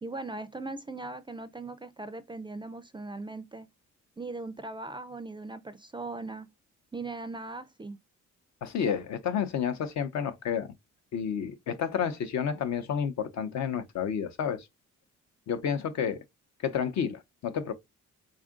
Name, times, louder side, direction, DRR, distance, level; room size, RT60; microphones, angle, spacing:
voice 1, 0.0-3.7 4.2-6.5 6.9-8.0, right 3 dB, 15° right, 0.3 m, -39 dB
voice 2, 8.6-10.7 11.1-14.7 15.5-16.2 16.6-17.7, left 7 dB, 65° left, 0.7 m, -30 dB
3.6 x 2.4 x 3.6 m
cardioid pair, 90°, 30 cm